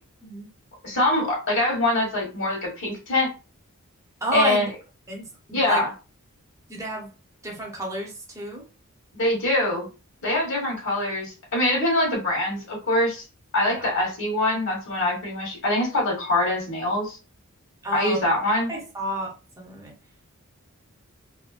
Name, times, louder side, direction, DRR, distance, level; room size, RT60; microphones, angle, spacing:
voice 1, 0.8-3.3 4.3-4.7 5.5-5.9 9.2-9.9 10.2-13.2 13.5-17.2 17.9-18.7, left 1 dB, 60° left, -2 dB, 1.5 m, -24 dB
voice 2, 4.2-4.7 5.1-5.8 6.7-7.1 7.4-8.6 13.7-13.9 17.8-18.2 18.7-19.9, right 1 dB, 15° right, -2 dB, 0.9 m, -30 dB
3.5 x 2.2 x 2.5 m, 0.32 s
head